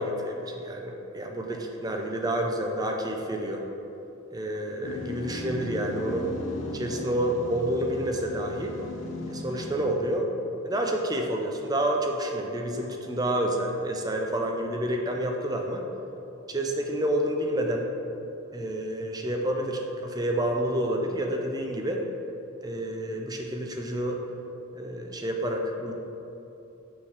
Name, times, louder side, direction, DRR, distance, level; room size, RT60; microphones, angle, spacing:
voice 1, 0.0-3.6 4.3-6.3 6.7-8.7 9.3-10.3 10.6-15.8 16.5-17.9 18.5-22.0 22.6-24.2 24.7-25.9, right 1 dB, 20° right, 2 dB, 0.6 m, -29 dB
sound 1, 4.8-10.1, left 1 dB, 70° left, 0.7 m, -36 dB
6.9 x 3.7 x 6.4 m, 2.9 s
head